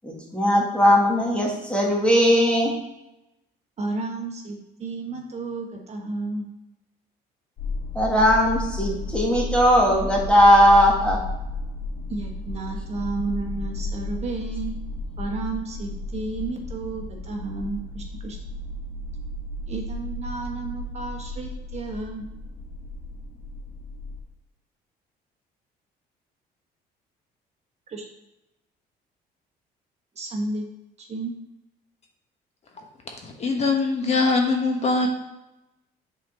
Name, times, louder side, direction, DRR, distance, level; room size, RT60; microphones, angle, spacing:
voice 1, 0.0-2.7 8.0-11.2, equal, 5° left, -2 dB, 2.0 m, -18 dB
voice 2, 3.8-6.4 12.1-14.8 15.2-18.4 19.7-22.2 27.9-28.0 30.1-30.6 31.0-31.3, right 3 dB, 40° right, 1 dB, 1.3 m, -32 dB
sound 1, 7.6-24.2, left 2 dB, 75° left, 2.2 m, -33 dB
voice 3, 32.7-35.1, left 3 dB, 40° left, 2 dB, 1.1 m, -23 dB
7.3 x 4.1 x 5.0 m, 0.91 s
cardioid pair, 110°, 17 cm